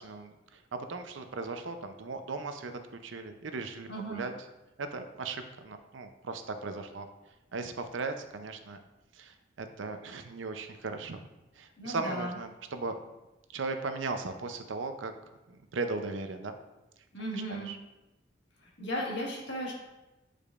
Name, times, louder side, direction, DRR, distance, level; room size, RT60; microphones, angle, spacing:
voice 1, 0.0-2.7 3.0-4.3 4.8-7.1 7.5-8.8 9.1-11.2 11.6-13.0 13.5-15.1 15.5-16.6 17.3-17.8, right 3 dB, 85° right, 7 dB, 0.6 m, -37 dB
voice 2, 3.9-4.3 11.8-12.4 17.1-17.7 18.6-19.7, equal, 65° left, -2 dB, 1.6 m, -36 dB
8.5 x 5.0 x 2.5 m, 1.0 s
head